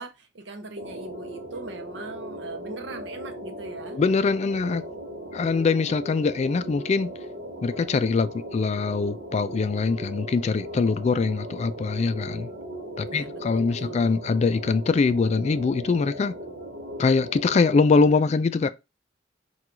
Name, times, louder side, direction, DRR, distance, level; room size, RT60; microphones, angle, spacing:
voice 1, 0.0-4.0 5.9-6.0 13.1-14.0, right 3 dB, 75° right, 0.7 m, -40 dB
sound 1, 0.8-18.1, right 1 dB, 55° right, 1.0 m, -38 dB
voice 2, 3.9-4.9 5.3-7.1 7.6-12.5 13.0-16.4 17.0-18.7, left 4 dB, 35° left, 0.3 m, -23 dB
4.5 x 2.3 x 3.7 m
head